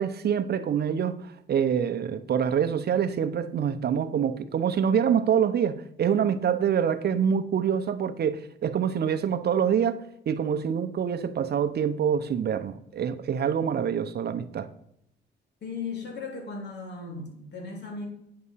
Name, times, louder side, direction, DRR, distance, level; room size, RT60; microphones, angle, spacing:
voice 1, 0.0-14.7, right 8 dB, 55° right, 0.8 m, -26 dB
voice 2, 15.6-18.1, left 4 dB, 60° left, 3.2 m, -36 dB
9.6 x 5.7 x 5.7 m
cardioid pair, 90°, 20 cm